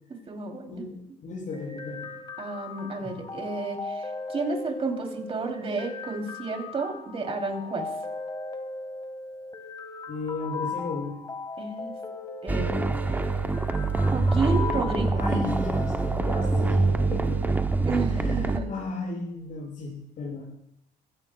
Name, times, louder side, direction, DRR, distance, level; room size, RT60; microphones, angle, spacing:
voice 1, 0.1-0.8 2.4-7.9 11.6-11.9 12.4-12.7 13.0-13.3 14.1-15.2 17.8-18.7, right 3 dB, 35° right, 2 dB, 3.2 m, -31 dB
voice 2, 0.7-2.1 3.0-3.2 10.1-11.2 15.1-17.6 18.1-20.5, left 3 dB, 50° left, -7 dB, 6.5 m, -35 dB
sound 1, 1.5-17.5, left 3 dB, 25° left, 1.6 m, -38 dB
sound 2, 12.5-18.6, right 3 dB, 10° right, 0.7 m, -25 dB
25.5 x 16.0 x 2.3 m, 0.79 s
cardioid pair, 110°, 17 cm